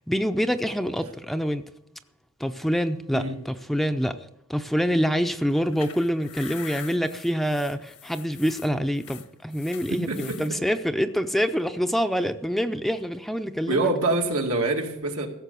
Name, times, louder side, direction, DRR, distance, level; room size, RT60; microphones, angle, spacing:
voice 1, 0.1-1.6 2.4-4.2 4.5-13.9, equal, ahead, 0.5 m, -26 dB
sound 1, 5.5-10.5, left 9 dB, 80° left, 1.4 m, -44 dB
voice 2, 9.9-10.4 13.7-15.3, right 2 dB, 85° right, 2.1 m, -25 dB
16.0 x 6.8 x 6.8 m
head